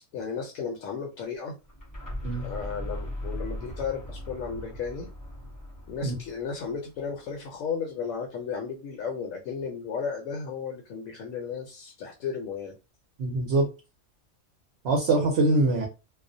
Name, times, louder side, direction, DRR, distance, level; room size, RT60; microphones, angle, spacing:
voice 1, 0.0-1.6 2.4-5.1 5.9-12.8, left 6 dB, 75° left, 0.9 m, -34 dB
sound 1, 1.6-7.4, equal, 20° left, 0.6 m, -39 dB
voice 2, 13.2-13.7 14.8-15.9, right 2 dB, 60° right, 0.7 m, -23 dB
2.3 x 2.0 x 2.6 m
omnidirectional pair, 1.5 m